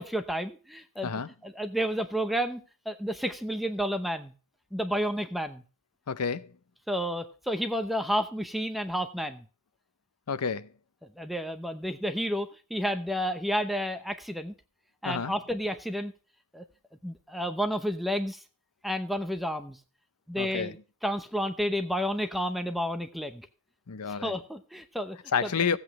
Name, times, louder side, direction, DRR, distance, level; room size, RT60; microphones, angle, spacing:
voice 1, 0.0-1.1 1.4-4.3 4.7-5.6 6.9-9.4 11.2-14.5 15.0-16.1 16.5-16.6 17.0-18.4 18.8-19.8 20.3-20.8 21.0-23.5 24.2-25.7, equal, ahead, 0.8 m, -31 dB
voice 2, 6.1-6.5 10.3-10.7 15.0-15.3 20.4-20.7 23.9-24.3 25.3-25.8, left 6 dB, 85° left, 0.7 m, -29 dB
15.5 x 8.2 x 3.1 m
head